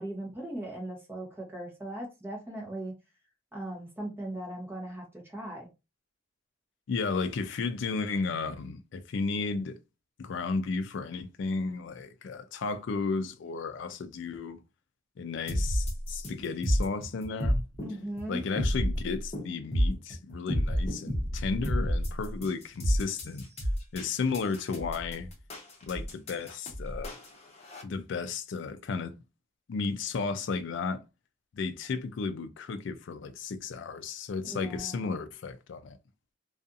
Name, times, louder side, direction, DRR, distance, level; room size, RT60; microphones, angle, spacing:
voice 1, 0.0-2.9 3.5-5.7 17.8-18.4 34.4-35.2, right 1 dB, 10° right, 0.8 m, -38 dB
voice 2, 6.9-9.8 10.2-14.6 15.2-17.6 18.3-23.5 23.9-25.3 25.9-27.2 27.8-29.2 29.7-31.0 31.5-36.0, left 4 dB, 70° left, 0.4 m, -33 dB
sound 1, 15.5-27.8, equal, 35° left, 0.8 m, -30 dB
2.5 x 2.4 x 2.6 m
head